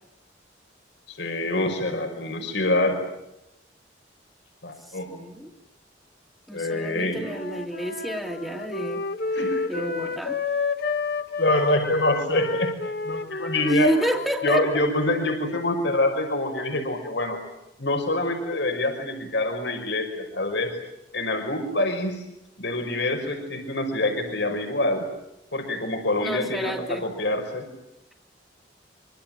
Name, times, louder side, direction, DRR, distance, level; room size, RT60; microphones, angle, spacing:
voice 1, 1.1-3.0 4.6-5.1 6.5-7.2 9.3-9.6 11.4-12.7 13.0-13.9 14.4-17.4 17.8-20.7 21.1-22.2 22.6-25.0 25.5-27.7, left 2 dB, 70° left, 5 dB, 5.5 m, -25 dB
voice 2, 4.9-5.5 6.5-9.0 9.7-10.4 13.6-14.7 26.2-27.1, equal, ahead, 0 dB, 2.5 m, -28 dB
Wind instrument woodwind instrument, 7.2-15.3, left 3 dB, 55° left, 1.6 m, -31 dB
25.5 x 25.5 x 9.0 m, 0.88 s
head